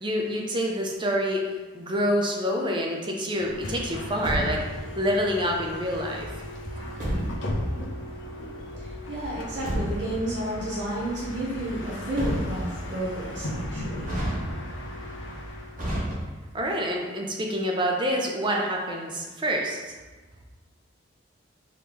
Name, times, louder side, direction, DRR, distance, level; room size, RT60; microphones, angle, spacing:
voice 1, 0.0-1.4 1.7-4.6 5.0-6.3 16.5-19.8, equal, 25° right, 0 dB, 0.5 m, -27 dB
Bus, 3.4-15.8, left 1 dB, 80° left, 0.7 m, -36 dB
Truck, 3.9-4.9 6.7-7.6 9.2-10.2 11.8-12.9 14.0-14.9 15.8-16.6, equal, 40° right, 1.3 m, -31 dB
voice 2, 8.8-14.1, right 1 dB, 60° right, -6 dB, 1.0 m, -31 dB
4.8 x 3.0 x 3.5 m, 1.3 s
head